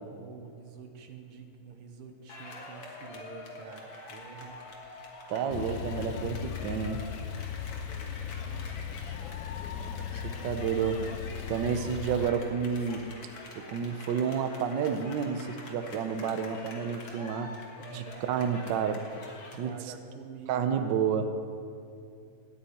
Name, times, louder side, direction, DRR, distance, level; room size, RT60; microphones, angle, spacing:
voice 1, 0.2-4.6 7.8-9.0 17.8-18.4 19.5-21.0, right 6 dB, 85° right, 5 dB, 2.0 m, -47 dB
sound 1, 2.3-19.6, left 3 dB, 65° left, 2.2 m, -46 dB
voice 2, 5.3-7.0 10.1-11.0 11.5-13.0 13.6-17.5 17.9-19.0 19.5-19.7 20.5-21.3, right 7 dB, 65° right, 8 dB, 1.3 m, -30 dB
Male speech man speaking / Car / Idling, 5.5-12.3, left 9 dB, 80° left, 0.9 m, -38 dB
12.5 x 7.0 x 9.3 m, 2.4 s
omnidirectional pair, 2.4 m